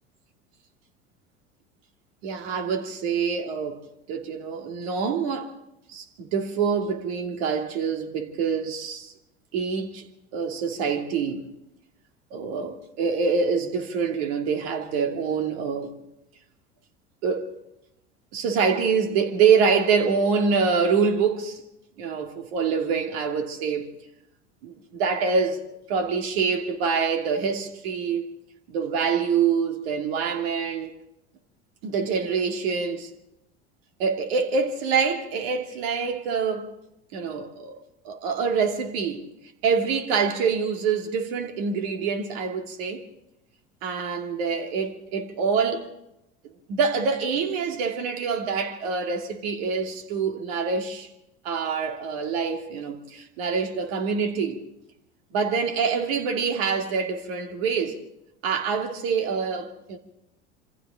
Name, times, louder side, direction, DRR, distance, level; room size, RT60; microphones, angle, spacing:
voice 1, 2.2-5.5 5.9-9.1 9.5-10.1 10.3-11.5 12.3-15.9 17.2-17.5 18.3-21.6 22.0-23.9 24.6-25.6 25.9-28.3 28.7-30.9 31.8-33.1 34.0-36.7 37.1-37.8 38.0-39.2 39.6-43.0 43.8-45.9 46.7-51.1 51.4-54.6 55.3-58.0 58.4-60.0, right 5 dB, 65° right, 2.8 m, -25 dB
26.5 x 25.5 x 3.8 m
hypercardioid pair, 75°, 33 cm